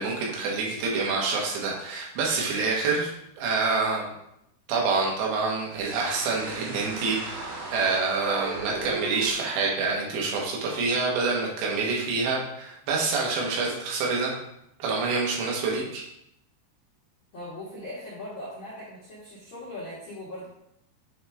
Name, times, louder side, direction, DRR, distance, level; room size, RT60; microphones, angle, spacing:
voice 1, 0.0-3.1 3.4-4.1 4.7-14.3 14.8-16.0, right 4 dB, 90° right, -2 dB, 3.5 m, -27 dB
sound 1, 5.7-9.3, right 3 dB, 65° right, 1.7 m, -36 dB
voice 2, 17.3-20.5, left 1 dB, 75° left, -8 dB, 1.1 m, -39 dB
8.6 x 3.3 x 3.5 m, 0.79 s
omnidirectional pair, 4.8 m